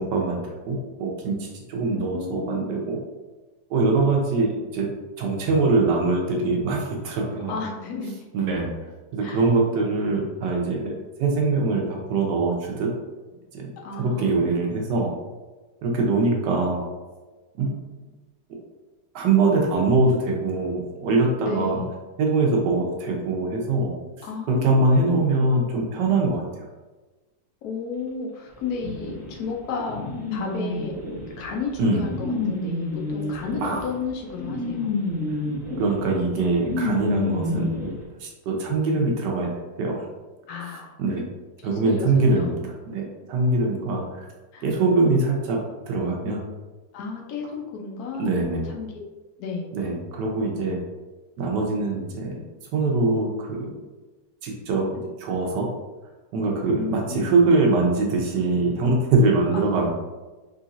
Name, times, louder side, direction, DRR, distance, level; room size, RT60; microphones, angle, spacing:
voice 1, 0.0-3.0 3.7-4.9 5.2-7.5 8.3-8.7 9.1-10.9 11.2-12.9 13.5-13.7 14.0-15.1 15.8-16.8 17.6-17.9 19.1-21.8 22.2-23.9 24.5-26.7 31.8-32.0 33.6-33.8 35.8-37.8 38.2-39.5 39.8-40.1 41.0-41.2 41.6-42.5 42.9-44.3 44.6-45.6 45.9-46.4 48.2-48.6 49.7-50.8 51.4-52.4 52.7-53.7 54.4-54.9 55.2-55.7 56.3-59.9, right 3 dB, 70° right, 0 dB, 1.3 m, -23 dB
voice 2, 1.8-2.7 7.5-8.3 9.2-9.5 13.8-14.7 21.4-22.0 24.2-25.2 27.6-30.0 30.3-31.0 31.4-34.9 40.5-40.9 41.6-42.6 44.5-44.7 46.9-48.3 48.6-48.9 49.4-49.8 56.7-57.5 59.5-59.9, left 5 dB, 65° left, 0 dB, 1.1 m, -33 dB
sound 1, 28.8-37.9, left 3 dB, ahead, 0.4 m, -29 dB
3.9 x 3.2 x 2.5 m, 1.2 s
omnidirectional pair, 2.0 m